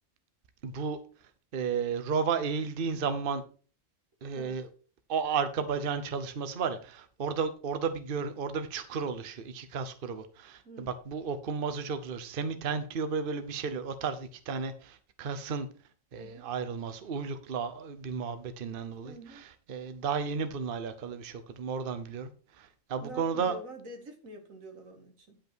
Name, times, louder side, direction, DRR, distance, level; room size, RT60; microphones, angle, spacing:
voice 1, 0.6-1.0 1.5-3.4 4.2-4.7 5.1-15.7 16.1-19.1 19.7-22.3 22.6-23.6, right 5 dB, 45° right, 11 dB, 0.9 m, -33 dB
voice 2, 16.1-16.5 19.0-19.5 23.0-25.4, right 2 dB, 85° right, 5 dB, 2.1 m, -46 dB
10.0 x 5.5 x 4.4 m, 0.38 s
omnidirectional pair, 1.4 m